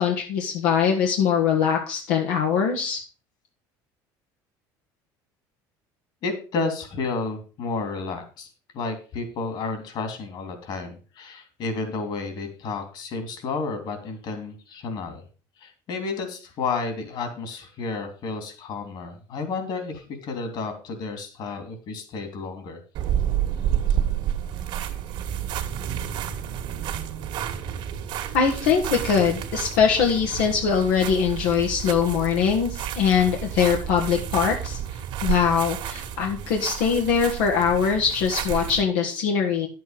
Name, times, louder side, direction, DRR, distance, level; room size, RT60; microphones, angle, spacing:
voice 1, 0.0-3.0 28.3-34.8 35.2-39.7, left 7 dB, 85° left, 1 dB, 1.7 m, -22 dB
voice 2, 6.2-15.2 15.6-22.8, left 4 dB, 55° left, 7 dB, 3.1 m, -31 dB
sound 1, 22.9-38.8, right 10 dB, 65° right, 1.8 m, -30 dB
10.0 x 7.9 x 5.1 m, 0.35 s
cardioid pair, 115°, 9 cm